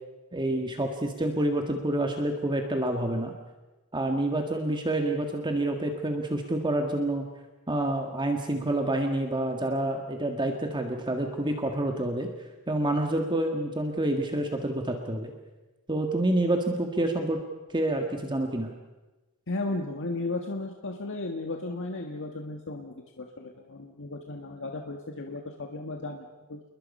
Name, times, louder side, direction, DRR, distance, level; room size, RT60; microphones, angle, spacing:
voice 1, 0.3-3.3 3.9-7.3 7.7-12.3 12.7-15.3 15.9-17.4 17.7-18.7, right 1 dB, 20° right, 4 dB, 1.8 m, -28 dB
voice 2, 19.5-26.6, left 2 dB, 60° left, 3 dB, 1.7 m, -35 dB
28.5 x 21.5 x 5.5 m, 1.1 s
head